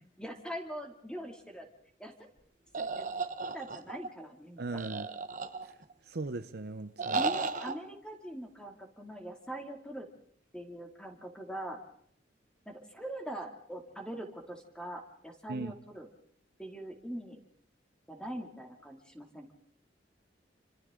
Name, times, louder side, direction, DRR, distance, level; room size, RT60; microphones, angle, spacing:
voice 1, 0.2-1.7 2.0-2.3 2.8-3.1 3.5-4.8 7.1-10.1 10.5-11.8 12.7-16.1 16.6-17.4 18.1-19.5, right 1 dB, 5° left, 2 dB, 2.6 m, -42 dB
sound 1, 2.7-4.1 4.8-5.9 7.0-7.7, right 4 dB, 45° right, 1.2 m, -34 dB
voice 2, 4.6-5.1 6.1-7.2 15.5-15.7, right 3 dB, 65° right, 9 dB, 0.8 m, -38 dB
28.5 x 25.5 x 3.8 m, 0.66 s
head